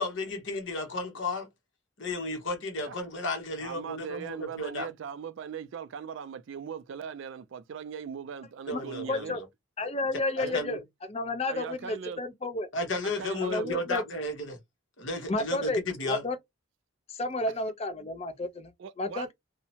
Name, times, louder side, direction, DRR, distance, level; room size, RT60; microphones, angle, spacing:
voice 1, 0.0-1.5 2.0-4.9 8.7-9.5 10.4-10.8 12.7-14.6 15.0-16.3, left 2 dB, 60° left, 1.0 m, -33 dB
voice 2, 3.6-9.4 10.4-10.6 11.5-12.2 13.0-13.8 17.5-17.6 18.8-19.3, right 7 dB, 60° right, 0.3 m, -39 dB
voice 3, 9.1-9.4 9.8-10.8 11.1-12.7 13.5-14.0 15.3-15.8 16.1-16.4 17.1-18.7 19.0-19.3, left 2 dB, 30° left, 0.5 m, -31 dB
2.7 x 2.1 x 2.7 m
head